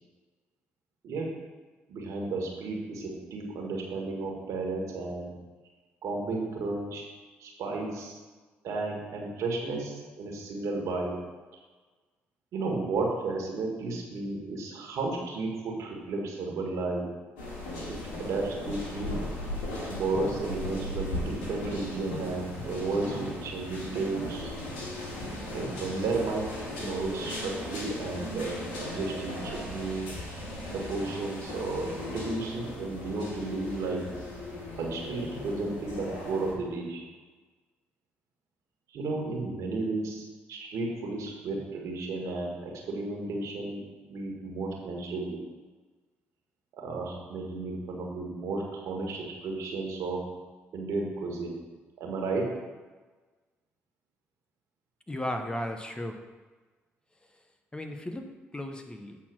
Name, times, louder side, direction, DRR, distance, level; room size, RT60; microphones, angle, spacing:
voice 1, 1.9-5.3 6.0-7.0 7.4-8.2 8.6-11.1 12.5-17.1 17.9-19.3 19.9-24.5 25.5-26.5 26.8-30.1 30.7-34.1 34.7-37.0 38.9-45.4 46.7-50.2 50.7-51.6 52.0-52.5, right 3 dB, 70° right, 0 dB, 1.9 m, -33 dB
sound 1, 17.4-36.5, left 1 dB, 90° left, 2.0 m, -37 dB
voice 2, 55.1-56.2 57.7-59.2, left 1 dB, 15° left, 5 dB, 1.0 m, -35 dB
8.4 x 4.2 x 6.2 m, 1.3 s
supercardioid pair, 55°, 5 cm